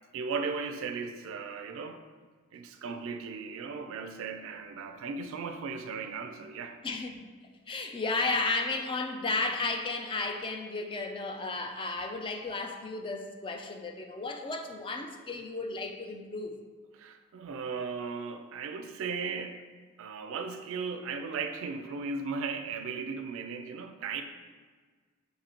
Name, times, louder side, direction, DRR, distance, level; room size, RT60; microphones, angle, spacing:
voice 1, 0.1-2.0 2.5-6.8 16.9-19.6 20.0-24.2, right 5 dB, 65° right, 7 dB, 0.3 m, -36 dB
voice 2, 6.8-7.3 7.7-16.5, left 3 dB, 25° left, 4 dB, 0.3 m, -33 dB
6.4 x 2.7 x 2.9 m, 1.5 s
head